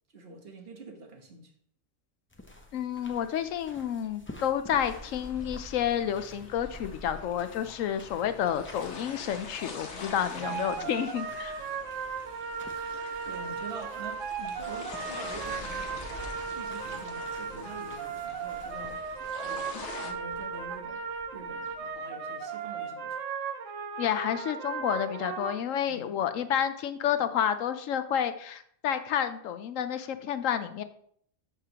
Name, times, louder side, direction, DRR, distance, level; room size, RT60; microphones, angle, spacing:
voice 1, 0.1-1.5 8.4-8.6 10.2-10.8 13.2-19.0 19.4-21.1 21.3-23.2 25.9-26.5, right 3 dB, 50° right, 1.4 m, -46 dB
sound 1, 2.3-21.9, left 1 dB, 10° left, 0.7 m, -50 dB
voice 2, 2.7-11.7 24.0-30.8, left 9 dB, 90° left, 1.0 m, -30 dB
sound 2, 4.8-20.1, left 4 dB, 65° left, 1.3 m, -45 dB
sound 3, 10.4-25.5, right 6 dB, 80° right, 1.2 m, -36 dB
13.5 x 4.9 x 2.9 m
omnidirectional pair, 1.3 m